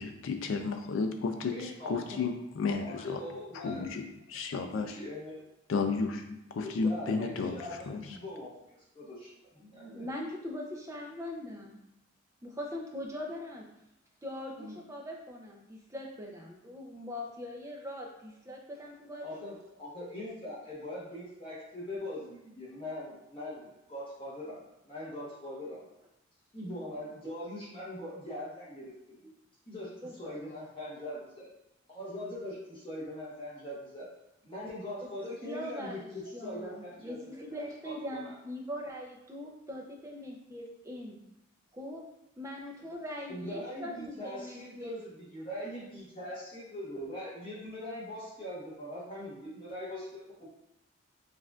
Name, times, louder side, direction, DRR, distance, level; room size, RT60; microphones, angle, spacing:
voice 1, 0.0-3.2 3.5-5.0 5.7-7.6 7.9-8.2, left 4 dB, 70° left, 5 dB, 0.3 m, -33 dB
voice 2, 1.4-2.2 2.8-3.9 4.7-5.4 6.5-10.1 14.6-14.7 19.2-25.8 26.5-29.3 29.7-31.5 31.9-34.1 34.4-38.3 43.3-50.5, left 1 dB, 25° left, -7 dB, 1.0 m, -42 dB
voice 3, 9.9-11.8 12.4-13.6 14.2-19.4 30.0-30.1 35.0-35.1 35.4-41.2 41.7-42.0 42.4-45.0, left 1 dB, 15° right, 0 dB, 0.5 m, -41 dB
6.3 x 2.5 x 2.4 m, 0.87 s
head